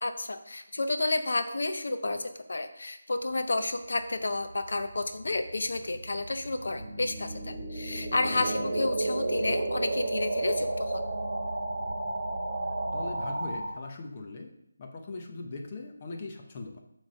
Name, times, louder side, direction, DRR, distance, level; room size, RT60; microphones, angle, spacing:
voice 1, 0.0-11.0, left 2 dB, 65° left, 8 dB, 0.7 m, -31 dB
sound 1, 4.4-13.7, right 2 dB, 60° right, 1.5 m, -32 dB
voice 2, 12.8-14.5 14.8-16.8, left 3 dB, 25° left, 3 dB, 0.7 m, -40 dB
8.3 x 3.2 x 5.3 m, 0.80 s
figure-of-eight pair, 175°, 0 cm